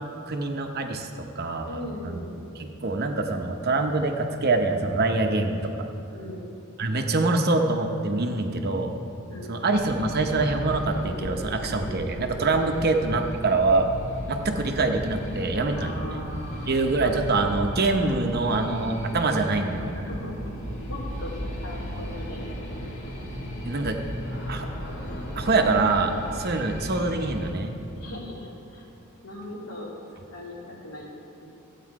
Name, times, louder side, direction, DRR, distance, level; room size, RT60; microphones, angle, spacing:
voice 1, 0.3-2.2 2.6-5.7 6.8-8.9 9.5-13.9 14.3-16.2 16.7-19.9 23.6-24.0 24.5-24.7 25.4-27.7, right 3 dB, 50° right, 4 dB, 0.8 m, -25 dB
voice 2, 1.7-2.3 6.1-6.4 9.3-9.6 12.7-13.3 15.8-16.9 19.9-20.4 20.9-22.4 22.7-22.9 28.0-28.8 29.2-29.9 30.3-31.1, left 1 dB, 80° left, -4 dB, 2.4 m, -39 dB
sound 1, 9.7-27.5, equal, 60° left, 2.0 m, -35 dB
13.5 x 8.4 x 4.7 m, 2.7 s
head